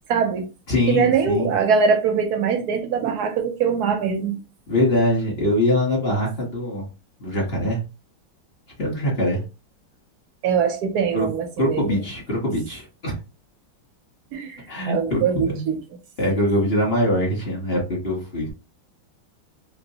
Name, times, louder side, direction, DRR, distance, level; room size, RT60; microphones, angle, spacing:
voice 1, 0.1-0.5 0.9-4.4 10.4-12.0 14.3-15.8, right 6 dB, 70° right, 0.9 m, -22 dB
voice 2, 0.7-1.5 4.7-6.8 7.2-7.8 8.8-9.4 11.1-11.3 11.6-13.1 14.7-15.7 16.2-18.5, left 1 dB, 35° left, 1.2 m, -23 dB
3.0 x 2.9 x 2.8 m
omnidirectional pair, 2.2 m